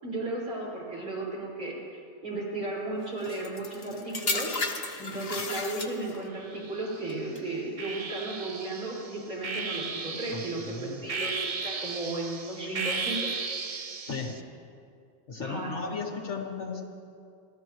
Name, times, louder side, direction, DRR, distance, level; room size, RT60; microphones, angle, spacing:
voice 1, 0.0-4.5 5.0-13.2 15.4-15.7, right 2 dB, 80° right, -7 dB, 5.6 m, -35 dB
sound 1, 3.2-6.3 7.1-7.4, left 3 dB, 30° left, 0.9 m, -33 dB
sound 2, 6.4-7.1 7.8-14.4, right 4 dB, 65° right, 0.3 m, -35 dB
voice 2, 10.3-11.0 14.1-14.4 15.3-16.8, left 4 dB, 55° left, 1 dB, 1.8 m, -35 dB
29.5 x 13.0 x 3.1 m, 2.4 s
omnidirectional pair, 1.5 m